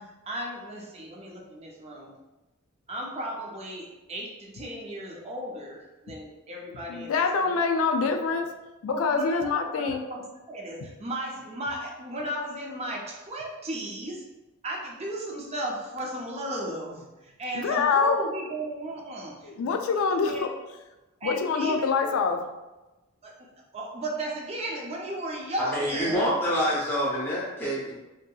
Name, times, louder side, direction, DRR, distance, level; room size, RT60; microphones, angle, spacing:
voice 1, 0.0-2.2 2.9-7.7 8.9-14.3 14.6-20.5 21.2-21.9 23.2-23.5 23.7-26.2, right 1 dB, 30° right, -1 dB, 0.5 m, -35 dB
voice 2, 6.9-8.5 8.8-10.0 17.5-18.2 19.4-20.5 21.2-22.5, left 5 dB, 65° left, 5 dB, 0.3 m, -25 dB
voice 3, 25.6-28.0, equal, 10° left, -7 dB, 0.9 m, -27 dB
2.7 x 2.6 x 2.3 m, 1.1 s
head